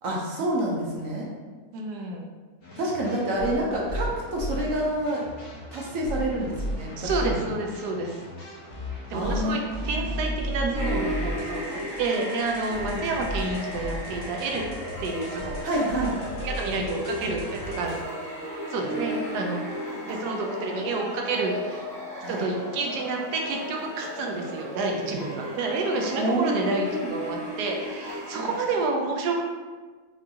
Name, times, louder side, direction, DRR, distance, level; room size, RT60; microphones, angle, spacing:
voice 1, 0.0-1.3 2.8-5.2 5.7-7.4 9.1-10.0 12.8-13.0 15.6-16.2 22.2-22.5 26.2-27.1 28.3-28.5, right 1 dB, 65° right, -3 dB, 0.9 m, -28 dB
voice 2, 1.7-2.3 7.0-8.2 9.1-9.6 9.8-14.6 15.0-15.6 16.4-18.0 18.7-19.6 20.1-21.8 22.3-29.4, right 3 dB, 80° right, 1 dB, 1.2 m, -29 dB
sound 1, 2.6-18.0, equal, 45° left, 0.9 m, -35 dB
sound 2, 10.7-28.9, equal, 10° left, 0.4 m, -35 dB
4.7 x 2.5 x 2.8 m, 1.4 s
omnidirectional pair, 1.7 m